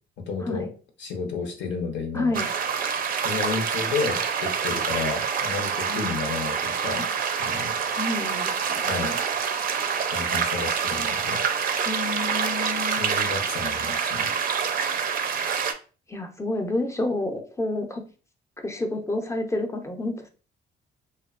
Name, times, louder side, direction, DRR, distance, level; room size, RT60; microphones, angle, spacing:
voice 1, 0.2-0.7 1.0-2.5 3.2-7.1 7.4-7.7 8.9-9.2 10.1-11.4 13.0-14.3, left 4 dB, 65° left, 3 dB, 0.8 m, -31 dB
voice 2, 2.1-2.5 5.8-6.2 7.9-9.2 11.9-13.1 16.1-18.0 18.6-20.3, left 2 dB, 15° left, 5 dB, 0.5 m, -29 dB
sound 1, 2.3-15.7, right 6 dB, 45° right, 0.4 m, -26 dB
2.7 x 2.2 x 2.4 m, 0.37 s
cardioid pair, 90°, 20 cm